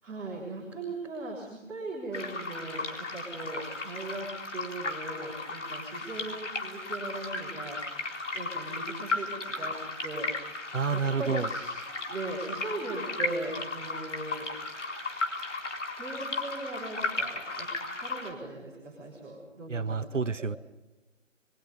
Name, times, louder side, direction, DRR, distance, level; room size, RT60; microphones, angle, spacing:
voice 1, 0.0-8.0 8.3-9.8 10.0-10.3 10.6-11.7 12.1-14.5 15.9-17.7 18.0-20.5, right 2 dB, 5° right, -11 dB, 3.6 m, -39 dB
sound 1, 2.1-18.3, left 3 dB, 65° left, 4.3 m, -35 dB
voice 2, 10.7-11.5 19.7-20.6, right 5 dB, 70° right, 12 dB, 1.4 m, -29 dB
29.5 x 22.5 x 5.4 m, 1.0 s
figure-of-eight pair, 165°, 39 cm